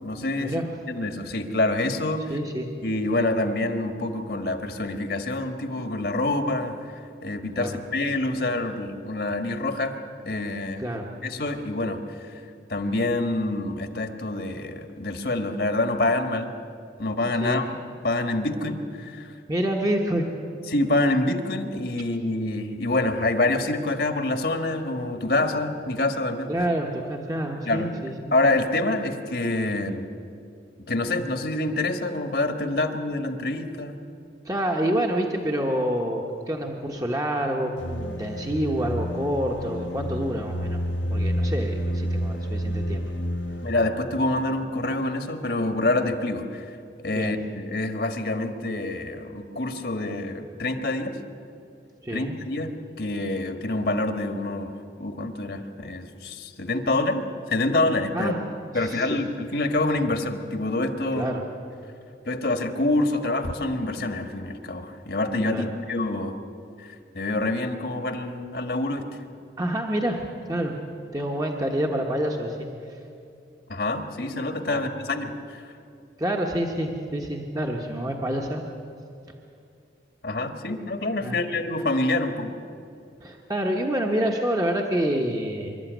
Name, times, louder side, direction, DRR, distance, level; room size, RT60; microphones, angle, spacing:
voice 1, 0.0-0.6 0.9-2.3 2.8-6.7 7.2-9.9 10.2-10.8 11.2-12.0 12.7-16.5 17.0-17.6 18.0-19.3 20.7-26.5 27.6-27.9 28.3-30.1 30.9-33.9 43.6-46.6 47.0-51.2 52.1-58.3 58.7-61.3 62.2-66.4 66.8-69.1 73.7-75.6 80.2-82.5, left 2 dB, 60° left, 7 dB, 1.6 m, -26 dB
voice 2, 2.3-2.7 7.6-7.7 10.8-11.1 17.4-17.6 19.5-20.3 26.5-28.3 34.4-43.0 47.1-47.3 52.0-52.4 58.1-58.4 58.7-59.2 61.2-61.4 65.5-65.7 69.6-70.2 70.5-70.7 71.1-73.0 74.7-74.9 76.2-78.6 81.2-81.4 83.2-85.7, right 1 dB, 20° right, 1 dB, 1.2 m, -27 dB
sound 1, 37.8-43.8, equal, 85° left, 1.5 m, -29 dB
25.0 x 12.5 x 9.3 m, 2.5 s
head